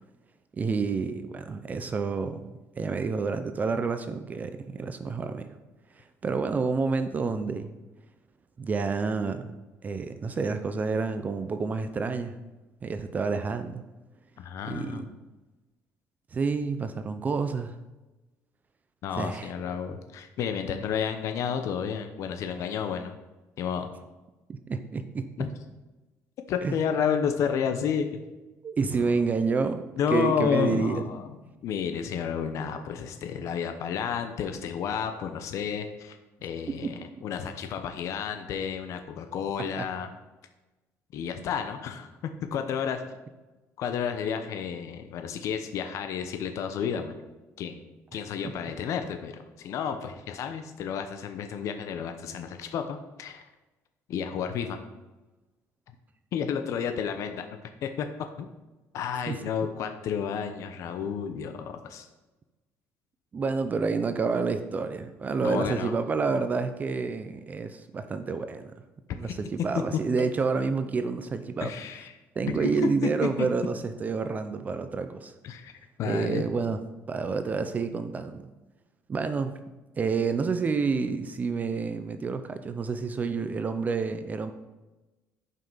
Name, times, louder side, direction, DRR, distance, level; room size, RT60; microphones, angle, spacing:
voice 1, 0.6-2.5 2.8-5.5 6.0-7.7 8.6-9.5 9.8-12.3 12.8-13.8 14.7-15.1 16.3-17.8 19.1-19.5 24.5-25.3 26.6-26.7 28.6-29.8 30.1-31.0 36.7-36.9 39.8-39.9 48.1-48.5 59.3-59.4 63.3-68.8 69.1-71.7 72.4-75.3 76.0-76.8 77.1-78.5 79.1-79.5 80.0-84.5, right 4 dB, 25° right, 9 dB, 0.5 m, -29 dB
voice 2, 14.4-15.1 19.0-23.1 23.6-23.9 25.4-25.5 26.5-28.2 28.9-29.1 30.0-31.3 31.6-40.1 41.1-43.0 43.8-47.1 47.6-47.8 48.1-53.4 54.1-54.8 56.3-57.5 57.8-58.1 58.4-58.5 58.9-62.1 65.4-65.9 69.3-69.4 71.6-72.1 72.5-73.1 75.4-75.7 76.0-76.4, left 7 dB, 60° left, 7 dB, 0.8 m, -31 dB
11.0 x 5.7 x 5.6 m, 1.1 s
cardioid pair, 140°, 6 cm